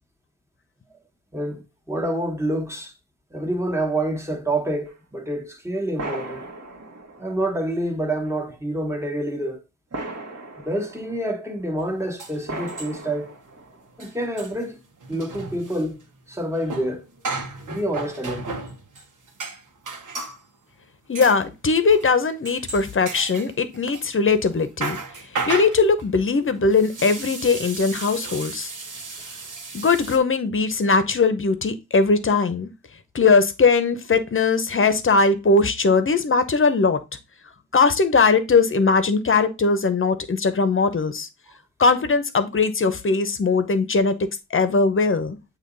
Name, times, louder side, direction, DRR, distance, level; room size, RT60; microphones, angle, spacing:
voice 1, 1.3-2.9 3.3-6.4 7.2-9.6 10.6-13.3 14.0-14.8 15.1-16.0 16.3-17.0 17.7-18.5, right 1 dB, 10° right, 1.3 m, -27 dB
sound 1, 4.9-5.0 6.0-7.8 8.3-8.4 9.9-11.5 12.5-14.0, right 2 dB, 55° right, 1.5 m, -37 dB
sound 2, 11.8-11.9 12.2-13.2 13.5-13.6 13.9-20.4 21.2-21.4 21.9-22.1 22.5-24.1 24.4-30.2, right 4 dB, 80° right, 1.4 m, -34 dB
voice 2, 21.1-25.0 25.5-28.7 29.7-32.7 33.1-37.0 37.7-41.3 41.8-44.2 44.5-45.4, left 4 dB, 40° left, 0.8 m, -20 dB
8.5 x 3.0 x 3.9 m
wide cardioid pair, 135°, 30 cm